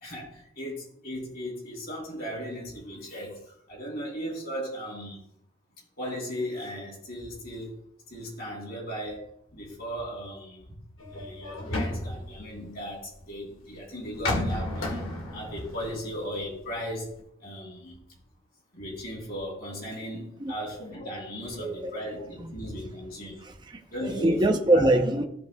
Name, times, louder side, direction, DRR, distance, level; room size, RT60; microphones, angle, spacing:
voice 1, 0.0-3.4 3.7-5.2 6.0-7.8 8.1-9.2 9.5-10.6 11.1-15.0 15.3-17.9 18.7-23.4 23.9-24.4 24.7-25.0, equal, 50° left, 3.7 m, -37 dB
sound 1, 11.0-13.2 14.0-16.9 17.2-17.3, left 1 dB, 80° left, 1.9 m, -32 dB
voice 2, 21.6-22.0 23.4-25.2, right 1 dB, 20° right, 0.6 m, -24 dB
16.0 x 5.3 x 2.3 m
head